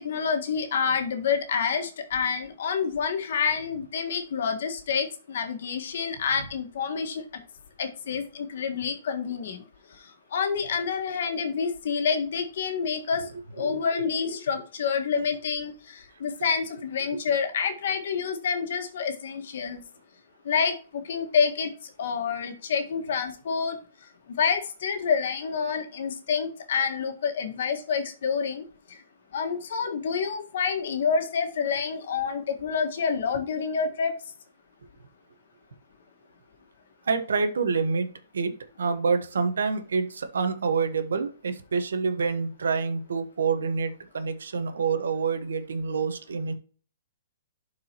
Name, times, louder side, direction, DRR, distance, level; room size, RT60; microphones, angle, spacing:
voice 1, 0.0-7.2 7.8-9.6 10.3-13.2 13.6-19.8 20.4-21.7 22.0-23.8 24.4-29.0 29.3-34.1, left 6 dB, 65° left, 5 dB, 1.7 m, -28 dB
voice 2, 37.1-38.5 38.8-46.5, right 5 dB, 85° right, 8 dB, 1.2 m, -27 dB
12.0 x 4.7 x 3.0 m, 0.40 s
hypercardioid pair, 145°, 0 cm